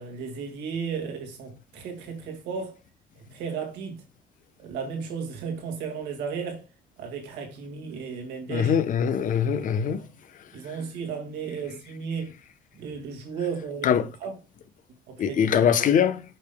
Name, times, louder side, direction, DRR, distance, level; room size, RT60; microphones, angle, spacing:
voice 1, 0.0-2.7 3.3-4.0 4.6-6.7 7.0-8.7 9.6-10.1 10.5-12.3 12.7-14.3 15.1-15.7, right 6 dB, 85° right, 2.1 m, -34 dB
voice 2, 8.5-10.0 10.7-10.8 13.8-14.1 15.2-16.2, left 8 dB, 50° left, 0.9 m, -22 dB
7.9 x 5.3 x 2.3 m
cardioid pair, 110°, 17 cm